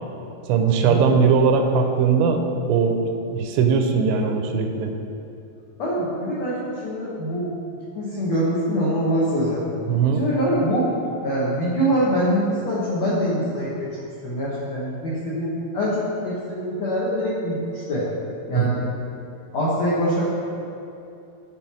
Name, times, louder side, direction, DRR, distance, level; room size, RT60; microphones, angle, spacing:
voice 1, 0.5-3.0 3.3-5.0 9.9-10.2 18.5-18.8, right 5 dB, 85° right, 4 dB, 2.9 m, -20 dB
voice 2, 5.8-7.5 7.9-9.6 10.2-10.9 11.2-13.9 14.2-18.1 18.5-18.8 19.5-20.3, equal, 80° left, -8 dB, 1.5 m, -24 dB
13.5 x 5.6 x 4.4 m, 2.7 s
omnidirectional pair, 5.3 m